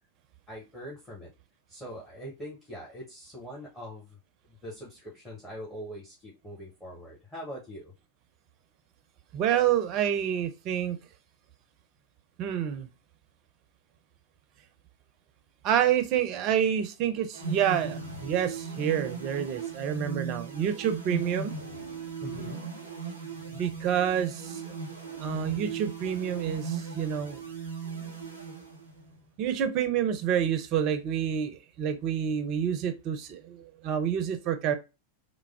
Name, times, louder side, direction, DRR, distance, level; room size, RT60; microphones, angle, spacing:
voice 1, 0.5-1.3 1.7-4.2 4.5-7.9 22.2-22.6, equal, 15° left, -4 dB, 1.1 m, -42 dB
voice 2, 9.3-11.0 12.4-12.9 15.6-21.5 23.5-24.7 25.2-27.4 29.4-34.7, right 9 dB, 40° right, 9 dB, 0.5 m, -28 dB
sound 1, 17.3-29.2, right 5 dB, 85° left, 0.8 m, -38 dB
3.3 x 2.0 x 3.2 m, 0.28 s
figure-of-eight pair, 90°, 0 cm